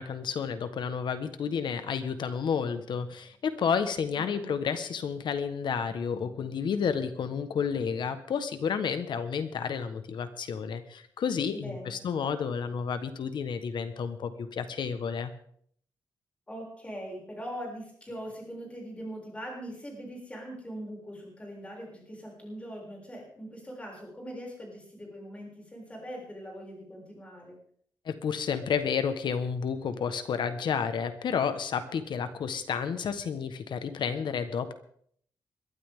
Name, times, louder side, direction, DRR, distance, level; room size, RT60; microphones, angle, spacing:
voice 1, 0.0-15.3 28.0-34.7, left 6 dB, 70° left, 10 dB, 1.4 m, -31 dB
voice 2, 4.1-4.5 11.5-12.0 16.5-27.5, equal, 15° left, -1 dB, 6.8 m, -41 dB
21.5 x 12.5 x 3.7 m, 0.62 s
wide cardioid pair, 130°, 8 cm